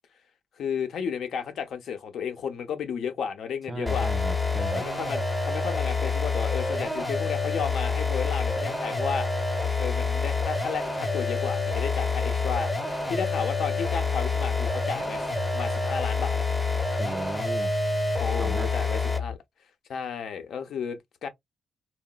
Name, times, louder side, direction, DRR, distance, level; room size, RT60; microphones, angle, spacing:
voice 1, 0.6-4.1 4.7-9.3 9.8-12.7 13.1-16.4 18.2-19.4 19.9-21.3, left 7 dB, 65° left, 0.6 m, -33 dB
voice 2, 3.7-4.8 17.0-17.7 18.4-18.7, right 2 dB, 25° right, 0.4 m, -36 dB
sound 1, 3.9-19.3, left 3 dB, 10° left, 0.7 m, -27 dB
2.9 x 2.1 x 2.2 m
cardioid pair, 90°, 0 cm